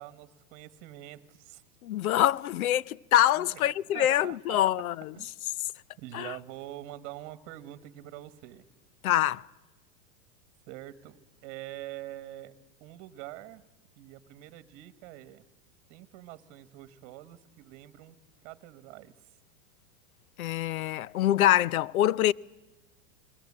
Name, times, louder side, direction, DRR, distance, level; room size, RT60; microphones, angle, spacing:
voice 1, 0.0-1.6 3.4-4.6 5.1-5.3 6.0-8.6 10.7-12.5 12.8-13.6 14.0-15.4 15.9-18.2 18.4-19.1, right 15 dB, 40° right, 1.5 m, -45 dB
voice 2, 1.8-5.1 6.1-6.3 9.0-9.4 20.4-22.3, left 12 dB, 80° left, 0.8 m, -25 dB
29.5 x 21.5 x 8.7 m
supercardioid pair, 150°, 42 cm